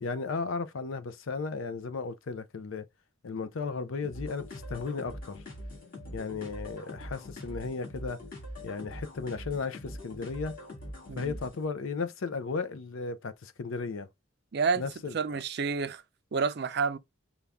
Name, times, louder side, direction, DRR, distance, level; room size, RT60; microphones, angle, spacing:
voice 1, 0.0-2.9 3.2-5.4 6.1-8.2 8.6-10.6 11.2-14.1 14.8-15.4, left 4 dB, 75° left, 0.5 m, -35 dB
sound 1, 4.0-11.6, left 1 dB, 45° left, 1.9 m, -43 dB
voice 2, 14.5-14.9 15.1-16.0 16.3-17.0, right 5 dB, 55° right, 0.4 m, -29 dB
5.4 x 2.3 x 3.4 m
head